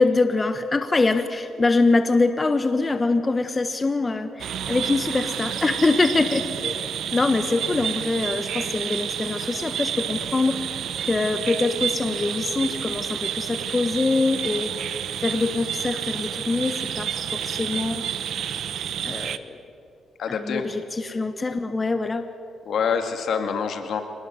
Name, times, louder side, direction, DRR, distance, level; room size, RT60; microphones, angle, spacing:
voice 1, 0.0-6.7 7.1-10.6 11.1-18.1 19.0-19.6 20.3-22.3, left 3 dB, 25° left, 9 dB, 1.2 m, -24 dB
sound 1, 4.4-19.4, right 9 dB, 75° right, 0.9 m, -30 dB
voice 2, 20.2-20.6 22.7-24.0, left 6 dB, 65° left, 7 dB, 2.2 m, -26 dB
25.5 x 19.5 x 7.9 m, 2.5 s
cardioid pair, 95°, 0 cm